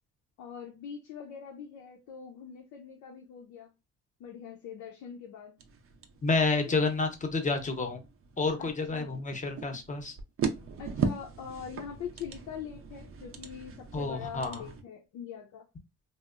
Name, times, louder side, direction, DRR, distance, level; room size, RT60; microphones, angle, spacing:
voice 1, 0.4-3.7 4.2-5.5 6.6-6.9 8.6-9.1 10.8-15.7, left 7 dB, 90° left, 0.6 m, -43 dB
sound 1, 5.6-14.8, right 6 dB, 45° right, 0.5 m, -38 dB
voice 2, 6.2-8.0 8.4-10.2 13.9-14.6, left 3 dB, 25° left, 0.7 m, -29 dB
2.8 x 2.0 x 2.3 m
cardioid pair, 90°, 30 cm